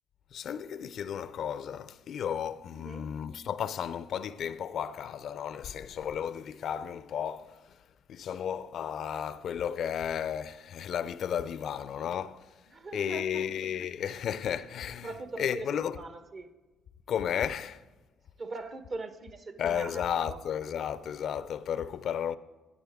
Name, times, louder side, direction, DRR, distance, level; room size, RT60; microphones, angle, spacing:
voice 1, 0.3-7.6 8.1-12.5 12.9-15.1 15.4-16.0 17.1-17.8 19.6-22.4, left 8 dB, 65° left, 0.4 m, -33 dB
voice 2, 2.7-3.1 12.7-13.7 14.0-14.1 15.0-15.7 15.9-16.5 18.4-20.4, right 3 dB, 50° right, 1.1 m, -41 dB
13.5 x 10.0 x 3.6 m
supercardioid pair, 60°, 0 cm